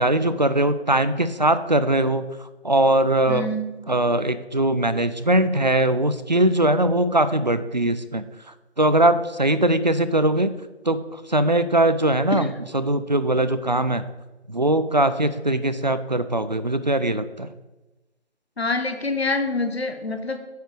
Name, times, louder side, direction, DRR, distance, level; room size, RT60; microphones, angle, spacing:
voice 1, 0.0-3.5 3.9-8.3 8.8-10.5 10.8-14.1 14.5-17.5, right 1 dB, 40° right, 13 dB, 0.4 m, -21 dB
voice 2, 3.3-3.7 12.3-12.4 18.6-20.4, left 2 dB, 65° left, 7 dB, 1.2 m, -26 dB
9.1 x 5.0 x 4.8 m, 1.1 s
figure-of-eight pair, 160°, 33 cm